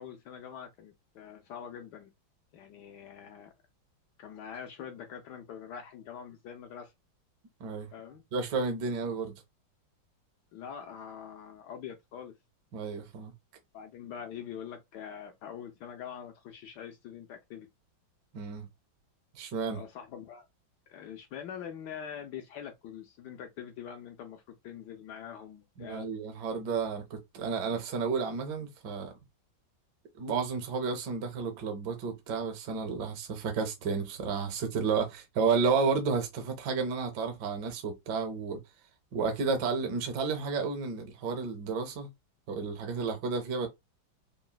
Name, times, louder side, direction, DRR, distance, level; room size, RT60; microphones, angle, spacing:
voice 1, 0.0-2.1 2.5-3.5 4.2-6.9 7.9-8.2 10.5-12.3 13.7-17.7 19.7-20.5 20.9-26.1, left 8 dB, 75° left, 1.0 m, -44 dB
voice 2, 7.6-7.9 8.3-9.4 12.7-13.3 18.3-18.7 19.3-19.8 25.8-29.1 30.2-38.6 39.1-42.1 42.5-43.7, right 5 dB, 65° right, 1.3 m, -31 dB
3.8 x 2.0 x 2.2 m
omnidirectional pair, 2.1 m